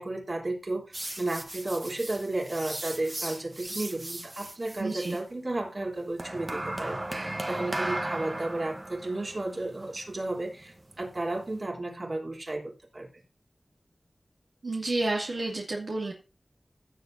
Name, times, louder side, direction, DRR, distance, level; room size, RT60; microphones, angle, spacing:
voice 1, 0.0-13.2, right 2 dB, 50° right, 0 dB, 3.5 m, -33 dB
sound 1, 0.9-5.2 6.2-11.6, right 1 dB, 35° right, 1.2 m, -37 dB
voice 2, 4.8-5.2 14.6-16.1, right 2 dB, 80° right, -2 dB, 2.4 m, -30 dB
16.5 x 7.6 x 2.7 m, 0.30 s
wide cardioid pair, 55°, 0 cm